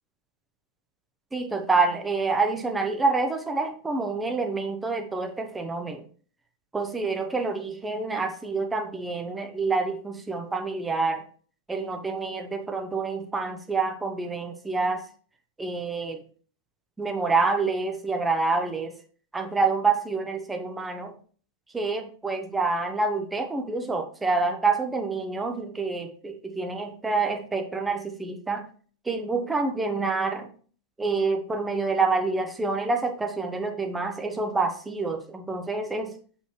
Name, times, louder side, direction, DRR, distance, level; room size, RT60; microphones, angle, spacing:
voice 1, 1.3-6.0 6.7-11.2 11.7-15.0 15.6-16.2 17.0-18.9 19.3-21.1 21.7-28.7 29.0-30.5 31.0-36.1, right 3 dB, 10° right, 6 dB, 1.0 m, -27 dB
7.9 x 5.4 x 3.1 m, 0.43 s
figure-of-eight pair, 90°, 0 cm